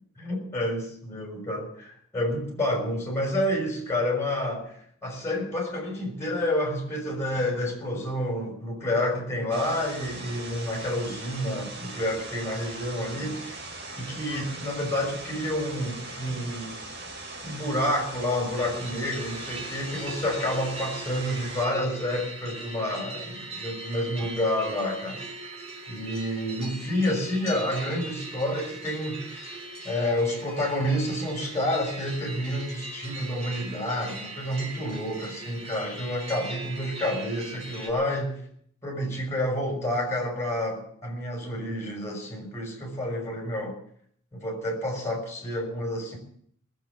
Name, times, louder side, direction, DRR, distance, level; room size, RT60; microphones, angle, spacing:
voice 1, 0.2-13.6 14.0-16.7 17.4-25.2 25.9-38.4 38.8-43.8 44.3-46.2, left 1 dB, 10° left, 0 dB, 6.0 m, -29 dB
sound 1, 9.5-21.6, right 2 dB, 55° right, 4.1 m, -40 dB
sound 2, 18.5-37.9, right 2 dB, 30° right, 3.9 m, -40 dB
20.0 x 7.8 x 8.9 m, 0.64 s
head